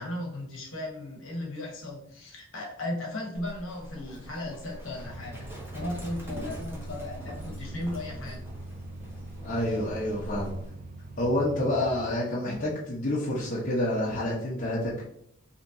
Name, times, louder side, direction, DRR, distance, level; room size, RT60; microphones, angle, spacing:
voice 1, 0.0-5.5 5.7-8.5, left 1 dB, 65° left, -1 dB, 1.1 m, -36 dB
Livestock farm animals working animals, 3.3-10.7, equal, 10° right, 0.9 m, -43 dB
sound 1, 5.0-12.2, right 2 dB, 40° right, 0.4 m, -43 dB
voice 2, 9.4-10.6 11.2-15.0, left 1 dB, 40° left, -7 dB, 0.8 m, -28 dB
4.0 x 3.0 x 2.7 m, 0.72 s
head